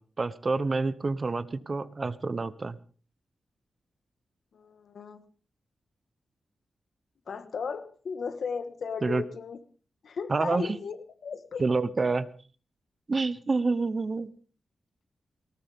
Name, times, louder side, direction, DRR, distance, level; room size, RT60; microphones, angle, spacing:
voice 1, 0.0-2.8 9.0-9.2 10.3-10.8 11.6-12.3 13.1-14.3, right 3 dB, 30° right, 15 dB, 0.8 m, -28 dB
voice 2, 4.5-5.2 7.3-9.6 10.0-11.6, left 5 dB, 60° left, 11 dB, 1.4 m, -36 dB
19.0 x 18.5 x 3.6 m, 0.40 s
wide cardioid pair, 150°, 0 cm